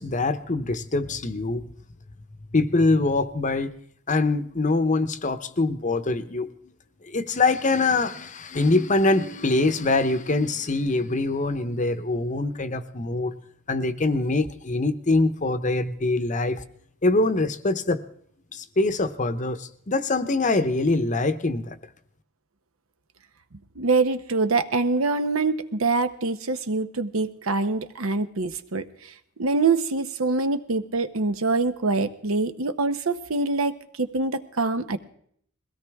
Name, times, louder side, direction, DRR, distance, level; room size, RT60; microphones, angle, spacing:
voice 1, 0.0-1.6 2.5-3.7 4.1-6.5 7.1-13.3 13.7-16.6 17.0-18.0 18.5-21.8, left 2 dB, 35° left, 11 dB, 0.8 m, -24 dB
voice 2, 23.8-28.8 29.4-35.0, right 3 dB, 70° right, 10 dB, 0.9 m, -24 dB
21.5 x 16.5 x 3.5 m, 0.63 s
head